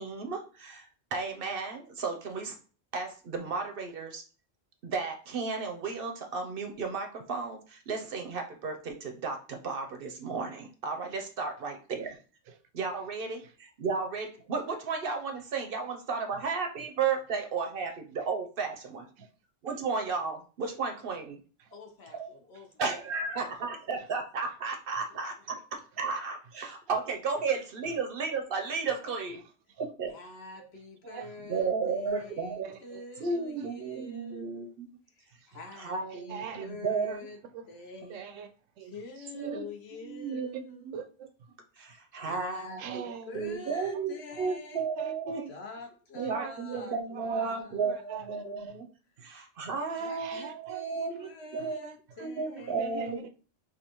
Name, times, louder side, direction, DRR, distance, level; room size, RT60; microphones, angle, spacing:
voice 1, 0.0-2.5 2.9-4.2 4.8-12.2 12.7-19.1 19.6-21.4 22.1-22.3 22.8-29.4 29.8-30.1 31.5-32.8 33.2-34.9 35.8-37.2 39.3-39.6 40.0-40.9 41.8-43.0 43.3-45.4 46.1-48.9 49.2-51.1 51.5-51.8 52.2-53.2, right 4 dB, 55° right, 0.7 m, -33 dB
voice 2, 21.7-22.9 23.4-23.5 30.1-34.7 35.1-37.4 37.7-38.3 38.8-40.8 41.9-44.9 45.5-48.0 49.9-53.1, left 3 dB, 60° left, 0.9 m, -46 dB
voice 3, 31.0-31.4 32.1-32.3 32.6-33.7 35.3-35.6 36.1-36.7 37.1-37.2 37.5-37.7 38.1-38.5 38.8-39.6 40.3-40.4 40.9-41.6 41.9-42.0 42.8-44.0 44.3-44.5 45.0-45.5 46.2-47.6 47.8-48.8 49.2-49.3 49.6-49.7 50.1-50.8 51.1-51.3 51.6-52.3 52.5-53.3, right 8 dB, 85° right, 0.9 m, -44 dB
5.0 x 2.3 x 2.9 m
omnidirectional pair, 1.3 m